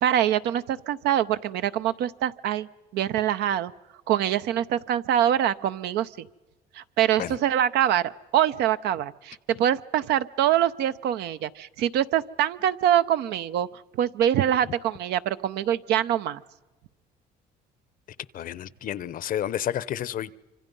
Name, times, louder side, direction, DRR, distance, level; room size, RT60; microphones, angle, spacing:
voice 1, 0.0-2.7 2.9-3.7 4.1-6.3 6.7-16.4, right 11 dB, 80° right, 0.7 m, -24 dB
voice 2, 18.3-20.3, left 11 dB, 55° left, 0.7 m, -30 dB
26.0 x 25.5 x 5.4 m
cardioid pair, 110°, 17 cm